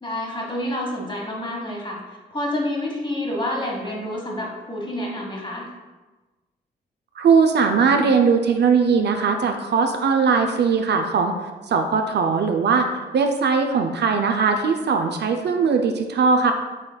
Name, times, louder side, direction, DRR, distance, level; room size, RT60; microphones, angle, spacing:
voice 1, 0.0-2.0 2.3-5.7, left 1 dB, 25° left, -1 dB, 1.2 m, -28 dB
voice 2, 7.2-11.4 11.7-12.9 13.1-16.5, right 5 dB, 60° right, 5 dB, 0.4 m, -19 dB
5.3 x 3.3 x 2.2 m, 1.2 s
supercardioid pair, 50°, 20 cm